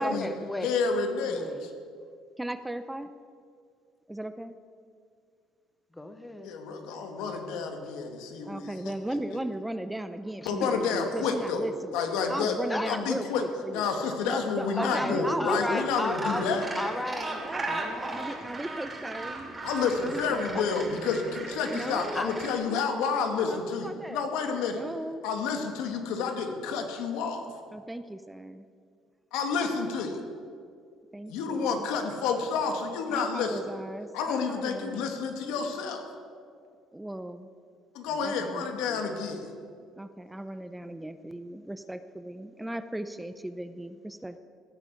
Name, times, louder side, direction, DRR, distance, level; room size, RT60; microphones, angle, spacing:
voice 1, 0.0-0.7 1.3-1.7 5.9-6.5 10.4-10.7 12.7-13.0 14.8-16.5 16.8-17.4 17.7-18.1 20.5-20.6 22.1-22.3 38.1-38.2 38.5-39.0, left 1 dB, 10° left, 8 dB, 1.2 m, -34 dB
voice 2, 0.6-1.7 6.4-8.9 10.5-11.6 11.9-12.6 12.8-13.4 13.7-16.6 19.6-24.8 25.2-27.5 29.3-30.2 31.3-33.6 34.1-36.0 37.9-39.5, left 5 dB, 85° left, 4 dB, 2.1 m, -29 dB
voice 3, 2.4-3.1 4.1-4.5 8.4-12.0 12.3-13.8 14.3-15.9 17.4-17.7 18.1-19.5 20.0-21.0 21.7-22.4 22.7-24.2 24.7-25.2 27.7-28.6 31.1-31.9 33.1-35.1 36.9-37.5 38.2-38.7 40.0-44.4, right 1 dB, 5° right, 11 dB, 0.6 m, -36 dB
Gull seagull, 15.8-22.5, right 2 dB, 20° right, 2.8 m, -37 dB
16.0 x 9.1 x 8.4 m, 2.2 s
cardioid pair, 115°, 0 cm